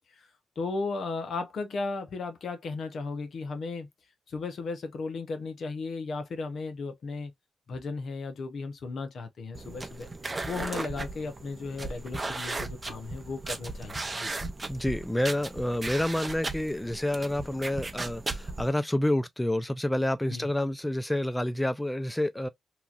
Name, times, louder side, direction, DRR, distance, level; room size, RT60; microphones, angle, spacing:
voice 1, 0.6-3.9 4.3-7.3 7.7-10.1 10.5-14.3 20.3-20.5, left 3 dB, 65° left, 0.8 m, -35 dB
sound 1, 9.5-18.7, right 3 dB, 30° right, 0.7 m, -36 dB
voice 2, 14.7-22.5, left 1 dB, 10° left, 0.4 m, -28 dB
2.9 x 2.4 x 2.5 m
cardioid pair, 60°, 0 cm